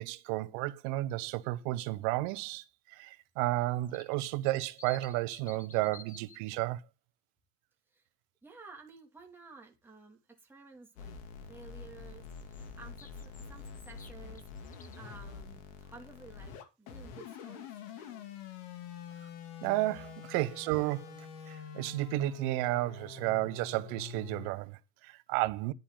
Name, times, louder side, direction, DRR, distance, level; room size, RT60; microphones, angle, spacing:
voice 1, 0.0-6.8 19.6-25.7, right 18 dB, 70° right, 1.2 m, -32 dB
sound 1, 3.6-6.4 12.3-15.1, left 5 dB, 20° left, 1.6 m, -55 dB
voice 2, 8.4-11.2 11.5-18.3, right 4 dB, 5° right, 2.7 m, -54 dB
sound 2, 11.0-24.5, left 6 dB, 80° left, 2.9 m, -46 dB
11.0 x 9.9 x 4.0 m
supercardioid pair, 130°, 38 cm